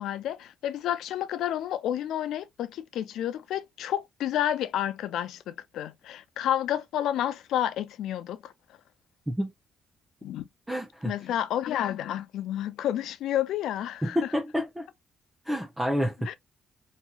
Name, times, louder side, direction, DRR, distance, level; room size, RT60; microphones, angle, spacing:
voice 1, 0.0-8.5 10.2-10.5 11.0-14.3 16.3-16.4, left 11 dB, 80° left, 0.3 m, -30 dB
voice 2, 10.7-11.1 14.0-14.9 15.5-16.1, equal, 10° right, 0.6 m, -28 dB
3.0 x 2.6 x 2.3 m
cardioid pair, 90°, 0 cm